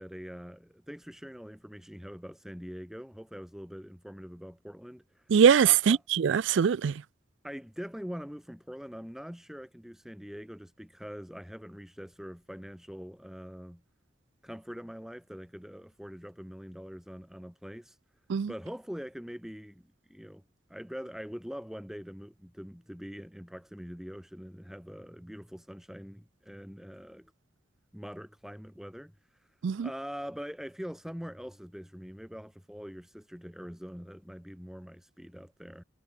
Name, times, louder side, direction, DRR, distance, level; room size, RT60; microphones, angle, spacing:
voice 1, 0.0-5.2 5.6-6.0 7.4-13.8 14.4-18.0 18.5-20.4 20.7-27.3 27.9-29.1 29.8-35.8, equal, ahead, 1.5 m, -43 dB
voice 2, 5.3-7.0 18.3-18.5 29.6-29.9, right 7 dB, 70° right, 0.4 m, -22 dB
head